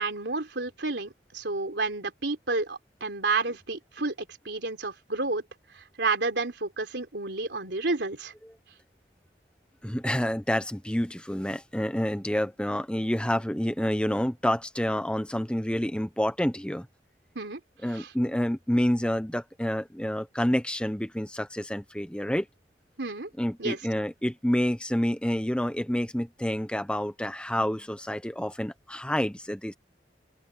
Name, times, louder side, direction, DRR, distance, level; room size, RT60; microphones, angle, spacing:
voice 1, 0.0-5.4 6.0-8.3 17.4-17.6 17.9-18.1 23.0-23.3 23.6-23.8, right 3 dB, 75° right, 3.8 m, -30 dB
voice 2, 9.8-16.9 17.8-22.5 23.4-29.7, equal, 5° left, 1.1 m, -28 dB
open air
head